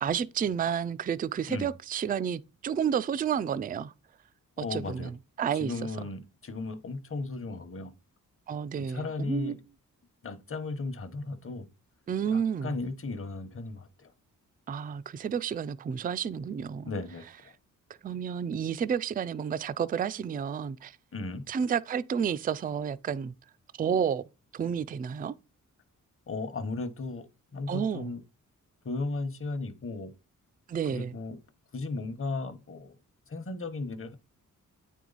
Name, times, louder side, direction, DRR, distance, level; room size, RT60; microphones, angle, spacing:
voice 1, 0.0-3.9 4.6-5.1 5.4-5.9 8.5-9.5 12.1-12.7 14.7-16.9 18.0-21.0 21.5-23.3 23.7-24.2 24.5-25.3 27.7-28.1 30.7-31.2, right 7 dB, 30° right, 0.3 m, -30 dB
voice 2, 4.6-5.1 5.6-7.9 8.9-9.6 10.2-11.7 12.3-14.1 16.8-17.5 21.1-21.4 26.3-27.3 27.5-28.2 28.8-30.1 30.9-31.4 31.7-32.9 33.3-34.2, left 3 dB, 40° left, 1.1 m, -35 dB
9.3 x 4.6 x 3.9 m
wide cardioid pair, 130°, 32 cm